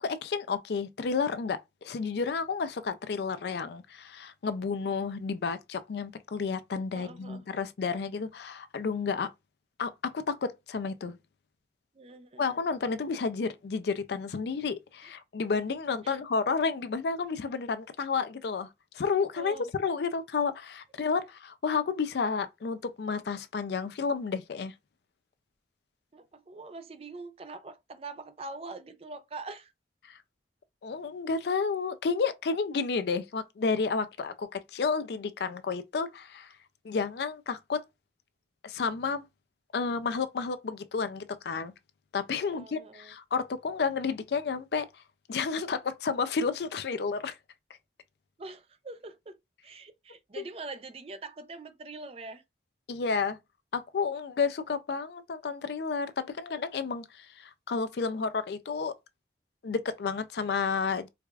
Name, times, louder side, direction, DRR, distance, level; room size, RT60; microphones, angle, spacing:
voice 1, 0.0-9.3 9.8-11.2 12.4-18.7 18.9-24.7 30.1-30.2 30.8-36.5 36.8-37.8 38.6-39.2 39.7-41.7 42.1-45.0 45.3-47.4 50.4-50.5 52.9-53.4 53.7-58.9 59.6-61.1, left 5 dB, 65° left, 0.4 m, -31 dB
voice 2, 6.9-7.4 11.9-12.5 16.0-16.2 19.4-19.7 26.1-29.7 42.4-43.1 48.4-52.4, right 3 dB, 35° right, 0.4 m, -44 dB
4.6 x 2.3 x 2.3 m
head